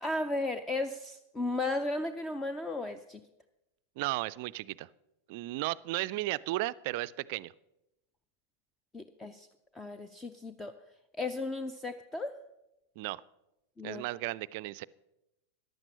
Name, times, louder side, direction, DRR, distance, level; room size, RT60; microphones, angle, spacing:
voice 1, 0.0-3.2 8.9-9.5 9.8-10.7 11.2-12.4 13.8-14.0, left 2 dB, 15° left, 0.6 m, -35 dB
voice 2, 4.0-4.9 5.3-7.5 13.0-13.2 13.8-14.9, right 18 dB, 50° right, 0.4 m, -34 dB
14.5 x 10.5 x 5.7 m
figure-of-eight pair, 90°, 0 cm